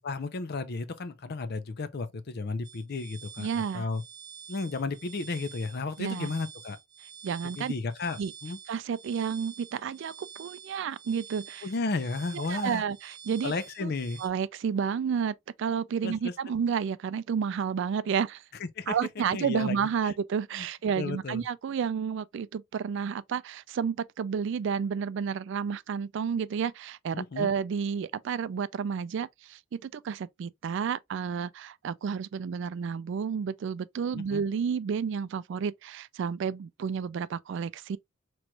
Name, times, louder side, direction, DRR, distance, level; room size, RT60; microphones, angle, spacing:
voice 1, 0.0-3.5 3.7-4.0 4.5-6.8 7.6-8.6 11.6-12.8 13.4-14.2 16.0-16.3 18.6-19.0 19.3-19.8 20.0-20.1 20.5-20.7 21.0-21.4 27.1-27.5 34.1-34.4, left 3 dB, 50° left, 0.5 m, -33 dB
sound 1, 2.6-14.3, right 7 dB, 20° right, 1.0 m, -48 dB
voice 2, 3.4-3.9 6.0-6.3 7.2-7.7 8.2-8.3 8.7-10.1 10.4-11.7 12.3-13.5 13.8-13.9 14.2-18.4 18.9-38.0, right 6 dB, 60° right, 0.3 m, -31 dB
4.5 x 3.1 x 2.3 m
head